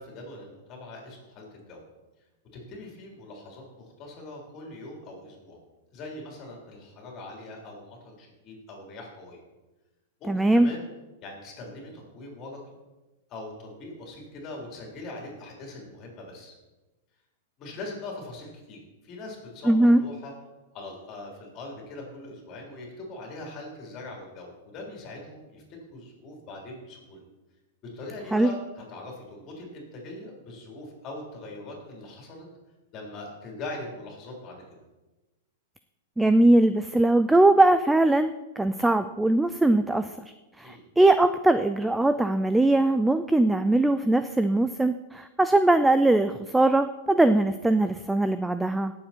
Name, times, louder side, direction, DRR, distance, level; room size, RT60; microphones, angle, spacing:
voice 1, 0.0-1.8 2.5-5.6 5.9-9.4 10.2-10.8 11.2-12.6 13.3-16.5 17.6-20.3 20.7-25.6 25.9-27.2 27.9-32.5 32.9-34.6 40.6-40.8, left 2 dB, 30° left, 0 dB, 3.9 m, -41 dB
voice 2, 10.3-10.7 19.7-20.0 28.3-28.5 36.2-40.1 40.6-48.9, right 2 dB, 5° right, 11 dB, 0.3 m, -21 dB
17.5 x 7.5 x 4.5 m, 1.1 s
supercardioid pair, 160°, 0 cm